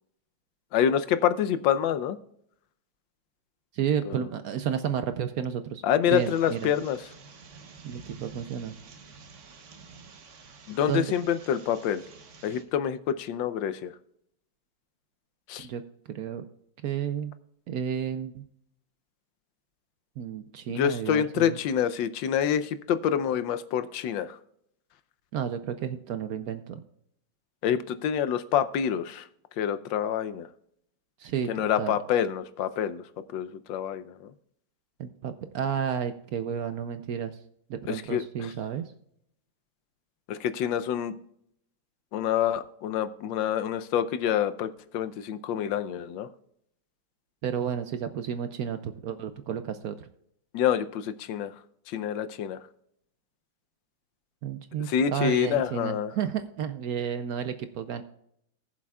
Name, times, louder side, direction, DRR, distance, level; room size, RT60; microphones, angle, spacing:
voice 1, 0.7-2.2 4.1-4.2 5.8-7.0 10.7-12.0 12.4-13.9 15.5-15.7 20.7-24.4 27.6-29.2 29.6-30.5 31.5-33.0 33.3-34.3 37.9-38.5 40.3-41.1 42.1-46.3 50.5-51.5 51.9-52.6 54.9-56.1, left 9 dB, 85° left, 12 dB, 1.4 m, -27 dB
voice 2, 3.7-6.7 7.8-8.7 10.9-11.1 15.6-15.8 16.1-16.4 16.8-17.3 17.7-18.4 20.2-21.5 25.3-26.8 31.2-31.5 31.8-32.0 35.0-37.4 37.7-38.9 47.4-50.1 54.4-58.0, right 8 dB, 65° right, 10 dB, 1.0 m, -31 dB
sound 1, 6.1-12.6, right 4 dB, 50° right, 1.2 m, -49 dB
19.0 x 7.3 x 2.3 m, 0.73 s
omnidirectional pair, 2.0 m